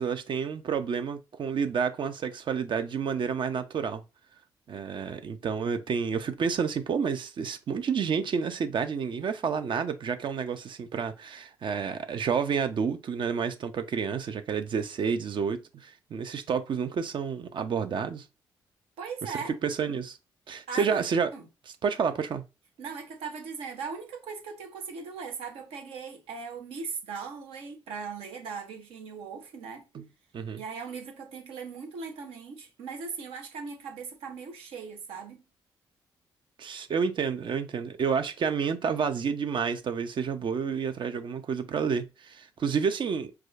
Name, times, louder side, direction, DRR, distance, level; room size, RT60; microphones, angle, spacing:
voice 1, 0.0-4.0 4.7-18.3 19.2-19.3 19.6-20.2 20.5-21.3 21.7-22.4 29.9-30.1 30.3-30.6 36.6-43.3, right 6 dB, 55° right, 0.5 m, -30 dB
voice 2, 19.0-19.6 20.7-21.0 21.3-21.4 22.8-29.8 30.6-35.4, right 5 dB, 80° right, 0.8 m, -39 dB
4.7 x 2.2 x 2.4 m
supercardioid pair, 50°, 10 cm